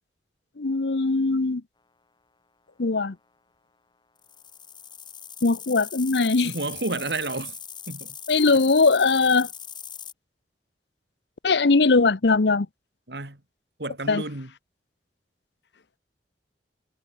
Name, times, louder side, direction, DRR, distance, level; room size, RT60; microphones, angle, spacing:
voice 1, 0.6-1.6 2.8-3.2 5.4-6.5 8.3-9.5 11.4-12.7 14.1-14.2, left 3 dB, 75° left, 0.8 m, -20 dB
sound 1, 4.2-10.1, left 8 dB, 25° left, 5.0 m, -40 dB
voice 2, 6.4-7.6 7.9-8.2 13.1-13.4 13.8-14.5, right 2 dB, 70° right, 2.9 m, -31 dB
head